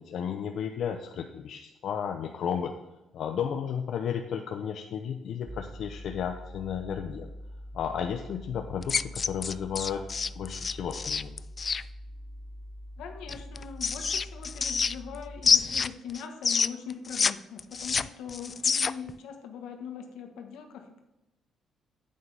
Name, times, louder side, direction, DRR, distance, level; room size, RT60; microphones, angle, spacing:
voice 1, 0.0-2.7 3.1-7.3 7.7-10.0 10.3-11.4, left 8 dB, 70° left, 4 dB, 0.7 m, -33 dB
sound 1, 5.5-15.4, equal, 20° right, 1.3 m, -44 dB
sound 2, 8.8-11.8 13.3-15.2 15.4-17.3 17.6-19.1, left 5 dB, 40° left, 0.3 m, -27 dB
voice 2, 13.0-21.0, left 6 dB, 90° left, 4 dB, 1.3 m, -41 dB
9.4 x 8.7 x 3.5 m, 0.98 s
cardioid pair, 90°, 0 cm